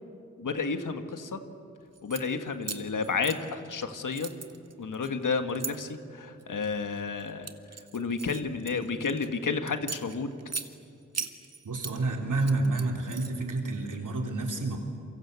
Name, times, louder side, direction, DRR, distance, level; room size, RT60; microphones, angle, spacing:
voice 1, 0.4-1.4 2.0-4.3 4.8-7.5 7.9-10.3, left 4 dB, 90° left, 7 dB, 1.6 m, -31 dB
sound 1, 1.9-2.2 2.6-3.8 4.1-5.7 6.4-6.7 7.2-9.3 9.7-10.7 11.1-12.0 12.3-13.5, right 5 dB, 55° right, 1.8 m, -38 dB
voice 2, 11.6-14.8, right 2 dB, 85° right, 2 dB, 3.7 m, -29 dB
28.0 x 24.0 x 8.2 m, 2.4 s
cardioid pair, 50°, 31 cm